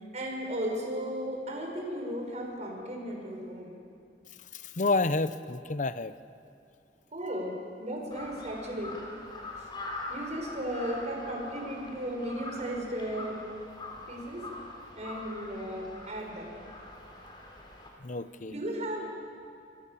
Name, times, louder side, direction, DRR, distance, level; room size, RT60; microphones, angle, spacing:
voice 1, 0.0-3.8 7.1-8.9 9.6-9.7 10.1-13.4 14.1-14.5 15.0-16.5 18.5-19.0, equal, 40° right, 0 dB, 5.8 m, -35 dB
voice 2, 4.5-6.1 18.0-18.5, left 3 dB, 45° left, 13 dB, 0.8 m, -29 dB
Crow, 8.1-17.9, left 2 dB, 25° left, 4.0 m, -43 dB
27.5 x 22.0 x 7.1 m, 2.5 s
head